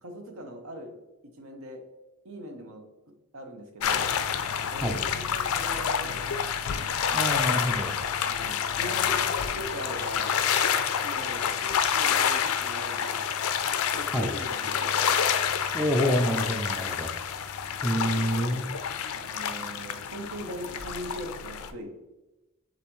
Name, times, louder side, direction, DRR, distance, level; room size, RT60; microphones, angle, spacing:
voice 1, 0.0-0.9 1.4-1.8 2.2-2.8 3.3-4.1 4.7-6.4 8.2-10.4 11.0-13.3 13.9-15.0 17.9-18.6 19.1-21.9, equal, 70° right, 5 dB, 0.8 m, -40 dB
sound 1, 3.8-21.7, left 8 dB, 80° left, 0.4 m, -28 dB
voice 2, 7.1-7.9 14.1-14.4 15.7-17.1 17.8-18.7, equal, 5° right, 2 dB, 0.4 m, -27 dB
6.6 x 2.6 x 3.0 m, 1.0 s
head